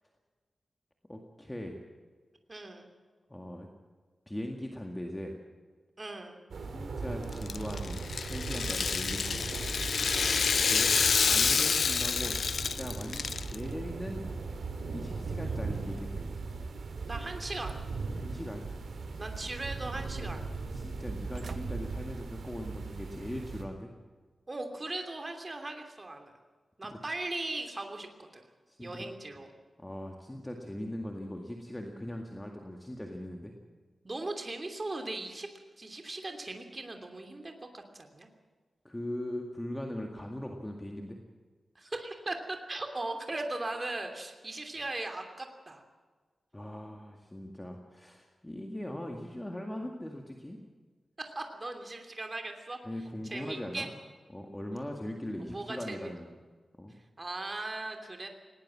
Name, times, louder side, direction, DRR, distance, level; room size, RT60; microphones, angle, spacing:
voice 1, 1.1-1.8 3.3-3.7 4.3-5.3 6.7-9.5 10.7-11.0 11.3-14.2 14.9-16.3 18.1-18.6 20.7-23.9 26.9-27.0 28.7-29.0 29.8-33.5 38.8-41.2 46.5-50.6 52.8-53.9 54.3-56.3 56.8-57.0, left 1 dB, 10° left, 2 dB, 2.0 m, -40 dB
voice 2, 2.5-2.9 6.0-6.4 10.1-10.5 17.1-17.8 19.2-20.4 24.5-26.3 26.8-28.4 28.8-29.5 34.0-35.5 35.8-38.3 41.7-45.8 51.2-52.8 53.2-53.9 55.5-56.1 57.2-58.3, right 2 dB, 25° right, 4 dB, 3.0 m, -38 dB
sound 1, 6.5-23.7, right 4 dB, 90° right, 2.9 m, -38 dB
Rattle (instrument), 7.3-13.5, left 5 dB, 70° left, 0.5 m, -28 dB
sound 2, 15.3-17.3 17.7-18.5 18.9-19.8 20.2-20.3 21.0-21.1 21.3-21.7 22.1-22.4 22.9-23.0, right 5 dB, 60° right, 0.8 m, -47 dB
20.0 x 18.0 x 7.5 m, 1.4 s
wide cardioid pair, 150°, 0 cm